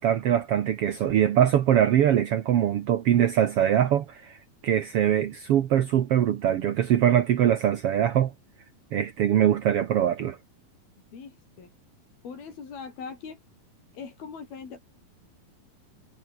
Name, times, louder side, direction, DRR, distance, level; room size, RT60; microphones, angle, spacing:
voice 1, 0.0-4.4 4.6-8.3 8.9-10.4, right 10 dB, 75° right, 1.3 m, -22 dB
voice 2, 11.1-11.7 12.2-13.4 13.9-14.8, left 5 dB, 75° left, 6.6 m, -41 dB
omnidirectional pair, 4.3 m